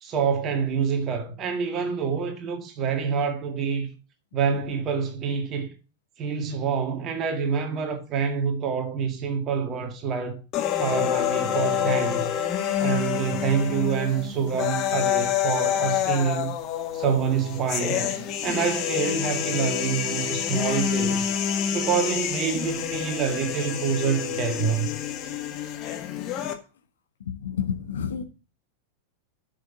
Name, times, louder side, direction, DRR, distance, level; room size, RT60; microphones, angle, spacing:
voice 1, 0.0-3.9 4.3-5.7 6.2-10.4 10.8-12.3 12.8-16.5 16.9-18.2 18.4-21.3 21.7-24.9, right 6 dB, 30° right, 1.9 m, -27 dB
sound 1, 10.5-26.5, left 9 dB, 35° left, 1.6 m, -27 dB
voice 2, 27.3-28.2, left 7 dB, 65° left, 1.2 m, -29 dB
10.5 x 6.3 x 4.0 m
figure-of-eight pair, 90°, 0 cm